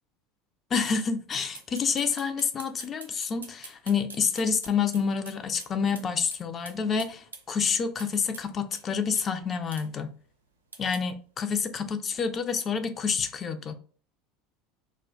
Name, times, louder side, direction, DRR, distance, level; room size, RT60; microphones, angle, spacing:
voice 1, 0.7-10.1 10.8-13.7, left 6 dB, 35° left, 0.4 m, -28 dB
sound 1, 1.5-5.7 5.9-6.1 6.3-6.4 6.6-8.5 8.7-8.8 9.2-9.3 9.7-9.9 10.7-11.0, right 3 dB, 85° right, 0.4 m, -44 dB
2.1 x 2.1 x 3.7 m
figure-of-eight pair, 75°, 0 cm